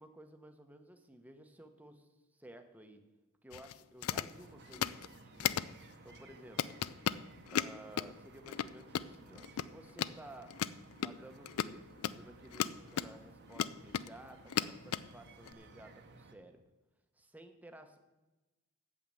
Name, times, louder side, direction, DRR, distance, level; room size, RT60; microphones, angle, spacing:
voice 1, 0.0-3.0 3.4-5.6 6.0-6.6 7.5-10.6 11.0-16.6 17.1-18.0, right 1 dB, 5° right, 6 dB, 0.9 m, -55 dB
sound 1, 3.5-3.7 4.0-4.3 4.7-5.1 5.4-5.7 6.1-6.2 6.6-8.1 8.5-9.1 9.3-9.7 9.9-10.1 10.5-13.1 13.5-14.2 14.5-15.0 15.4-15.5, left 9 dB, 80° left, 0.4 m, -35 dB
sound 2, 4.3-16.3, right 3 dB, 50° right, 1.0 m, -58 dB
8.6 x 7.7 x 7.6 m, 1.1 s
head